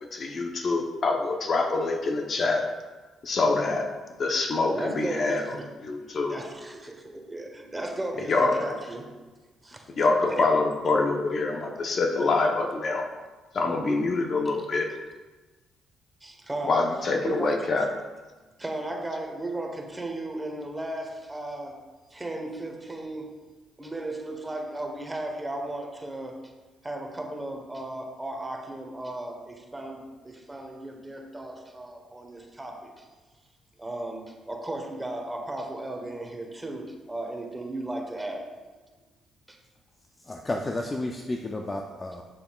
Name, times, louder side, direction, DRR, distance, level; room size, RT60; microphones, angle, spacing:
voice 1, 0.1-2.7 3.2-3.9 4.2-5.4 5.8-6.4 8.3-8.6 9.9-13.1 13.5-14.9 16.7-17.9, left 3 dB, 50° left, 3 dB, 0.8 m, -25 dB
voice 2, 4.7-5.7 6.3-9.1 9.6-9.8 10.2-10.5 14.4-14.6 16.2-16.8 17.2-17.5 18.6-21.8 22.1-23.3 23.8-26.4 26.8-32.9 33.8-38.5, right 2 dB, 15° right, 2 dB, 1.1 m, -35 dB
voice 3, 40.2-42.2, left 2 dB, 25° left, 1 dB, 0.5 m, -32 dB
8.0 x 6.8 x 2.4 m, 1.2 s
cardioid pair, 90°, 0 cm